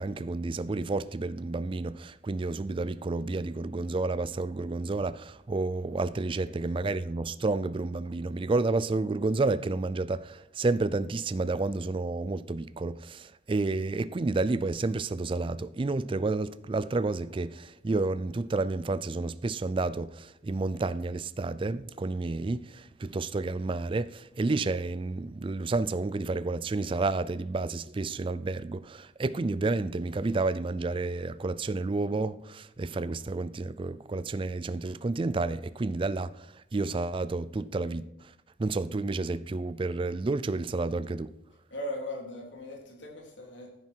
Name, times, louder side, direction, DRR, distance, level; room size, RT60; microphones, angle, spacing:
voice 1, 0.0-36.5 36.7-38.1 38.6-41.3, right 3 dB, 30° right, 0.4 m, -30 dB
voice 2, 41.7-43.8, left 1 dB, 90° left, 3.4 m, -39 dB
15.0 x 9.4 x 4.5 m
head